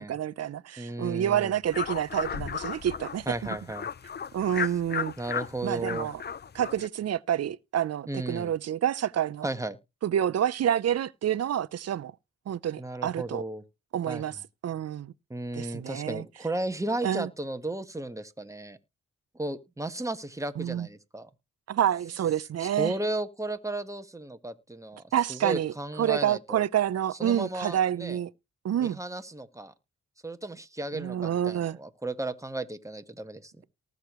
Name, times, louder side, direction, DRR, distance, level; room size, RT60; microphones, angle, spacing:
voice 1, 0.0-3.3 4.3-5.1 5.6-6.2 6.5-9.5 10.0-12.1 12.5-13.4 13.9-14.3 14.6-15.1 15.5-16.2 17.0-17.3 20.6-20.9 21.7-22.9 25.1-28.3 28.6-29.0 30.9-31.8, right 10 dB, 55° right, 0.6 m, -28 dB
voice 2, 0.8-1.6 3.3-3.9 5.2-6.1 8.1-8.5 9.4-9.8 12.8-13.6 14.1-14.2 15.3-18.8 19.3-21.3 22.6-26.6 27.2-28.2 28.8-29.7 30.2-33.5, right 2 dB, 10° right, 1.4 m, -34 dB
sound 1, 1.6-6.9, left 7 dB, 35° left, 0.6 m, -35 dB
19.0 x 6.6 x 3.1 m
cardioid pair, 65°, 30 cm